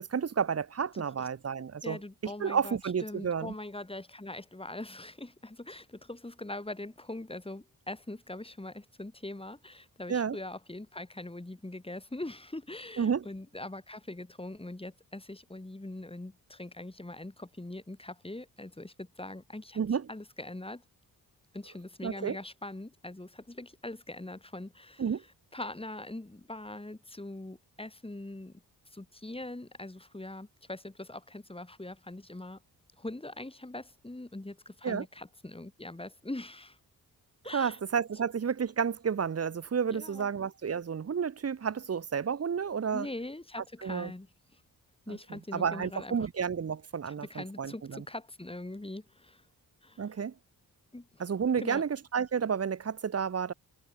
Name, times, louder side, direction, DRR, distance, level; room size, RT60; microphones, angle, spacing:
voice 1, 0.0-3.5 10.1-10.4 13.0-13.2 19.8-20.1 22.0-22.4 25.0-25.2 34.8-35.0 37.5-43.1 43.8-44.1 45.1-48.0 50.0-50.3 51.2-53.5, right 7 dB, 40° right, 1.1 m, -31 dB
voice 2, 1.8-19.8 20.1-20.8 21.5-25.0 25.5-28.6 28.9-32.6 33.0-36.8 37.4-37.8 39.9-40.3 42.9-44.3 45.1-46.3 47.0-49.4 49.8-50.0 50.9-51.2 51.6-51.8, left 2 dB, 15° left, 7.7 m, -42 dB
cardioid pair, 80°, 38 cm